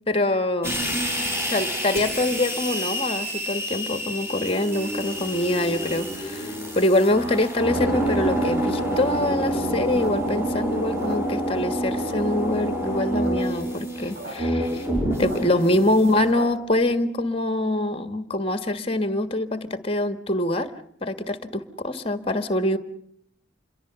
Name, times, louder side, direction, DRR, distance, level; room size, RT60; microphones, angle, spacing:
voice 1, 0.1-0.7 1.5-14.8 15.2-20.7 21.0-22.8, left 1 dB, 30° left, 11 dB, 1.5 m, -24 dB
sound 1, 0.6-16.3, equal, 15° right, 6.4 m, -27 dB
sound 2, 8.8-10.5 10.8-11.7 12.1-12.5 12.9-13.3 13.6-13.7 13.8-14.3 14.7-16.7, right 1 dB, 55° right, 6.1 m, -39 dB
27.5 x 22.5 x 6.9 m, 0.69 s
head